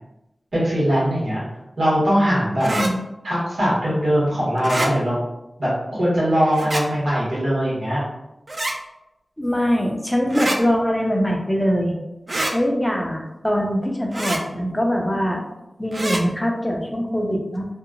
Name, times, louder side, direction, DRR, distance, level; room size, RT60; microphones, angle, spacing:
voice 1, 0.5-1.4 1.8-2.7 3.2-5.2 5.6-8.0, equal, 85° right, -9 dB, 1.3 m, -21 dB
voice 2, 2.6-3.0 9.4-12.0 12.5-15.4 15.8-17.7, equal, 10° left, 0 dB, 0.5 m, -22 dB
sound 1, 2.6-2.9 4.6-4.9 6.5-6.8 8.5-8.8 10.3-10.6 12.3-12.5 14.1-14.4 15.9-16.2, right 1 dB, 45° right, 0.3 m, -25 dB
2.8 x 2.2 x 2.4 m, 0.94 s
wide cardioid pair, 55°, 0 cm